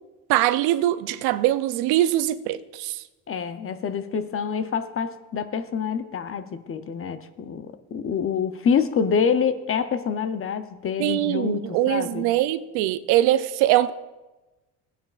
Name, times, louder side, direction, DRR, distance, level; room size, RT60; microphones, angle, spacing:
voice 1, 0.3-3.0 11.0-13.9, right 14 dB, 90° right, 0.5 m, -22 dB
voice 2, 3.3-12.3, left 6 dB, 35° left, 0.7 m, -26 dB
16.5 x 9.2 x 2.4 m
cardioid pair, 105°, 37 cm